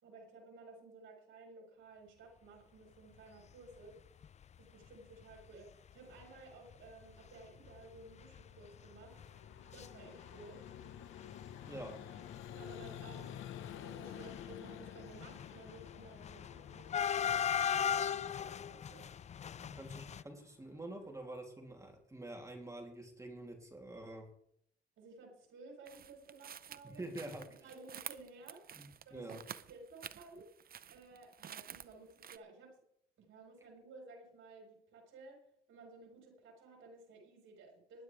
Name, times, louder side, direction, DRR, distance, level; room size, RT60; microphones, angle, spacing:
voice 1, 0.0-4.0 4.6-9.2 9.7-10.7 12.5-19.1 25.0-27.0 27.6-29.3 29.7-30.5 30.9-32.8 33.2-38.0, right 3 dB, 75° right, 0 dB, 4.8 m, -56 dB
sound 1, 4.2-4.4 4.9-5.0 5.2-5.4 6.2-6.3 6.7-6.9 7.2-7.3 7.6-9.9 10.1-10.8 11.1-20.2, left 8 dB, 35° left, 0.4 m, -38 dB
Vehicle, 6.7-21.4, left 10 dB, 85° left, 1.1 m, -52 dB
voice 2, 11.6-12.0 19.6-24.3 26.8-27.5 28.8-29.4, right 1 dB, 15° right, 1 dB, 3.0 m, -47 dB
sound 2, 25.9-32.4, right 8 dB, 50° right, 0.8 m, -50 dB
19.5 x 11.0 x 3.4 m, 0.70 s
cardioid pair, 90°, 20 cm